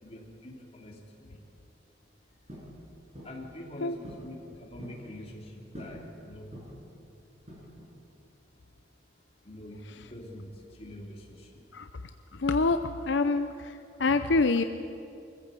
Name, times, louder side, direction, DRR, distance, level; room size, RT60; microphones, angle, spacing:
voice 1, 0.0-1.4 3.2-6.5 9.4-10.5 10.8-11.5, left 1 dB, 30° left, 0 dB, 3.2 m, -45 dB
sound 1, 2.5-2.7 3.1-3.4 4.0-4.3 4.6-5.0 5.7-6.0 6.5-6.9 7.5-7.9, equal, 35° right, 6.8 m, -45 dB
voice 2, 12.3-14.6, left 3 dB, 70° left, 9 dB, 0.7 m, -26 dB
23.5 x 15.0 x 8.3 m, 2.7 s
head